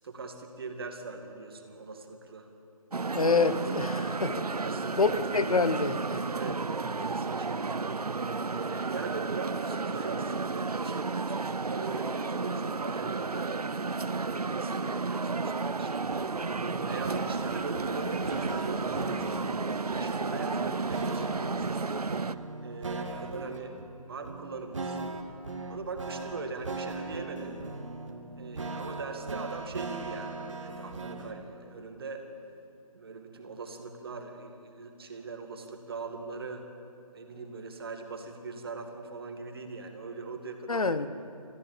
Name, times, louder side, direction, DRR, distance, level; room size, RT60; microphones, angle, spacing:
voice 1, 0.0-2.5 4.5-5.2 6.4-7.8 8.5-13.5 14.0-16.3 16.9-19.4 19.8-21.9 22.6-23.7 24.1-25.0 25.7-27.5 28.4-32.2 32.9-36.7 37.1-41.0, right 4 dB, 40° right, 4 dB, 2.2 m, -41 dB
sound 1, 2.9-22.4, right 4 dB, 80° right, 0.7 m, -32 dB
voice 2, 3.1-4.5 5.0-6.3 40.7-41.1, left 4 dB, 70° left, 13 dB, 1.3 m, -27 dB
sound 2, 16.1-31.4, right 3 dB, 55° right, 2.1 m, -39 dB
27.5 x 14.5 x 7.5 m, 2.7 s
figure-of-eight pair, 160°, 19 cm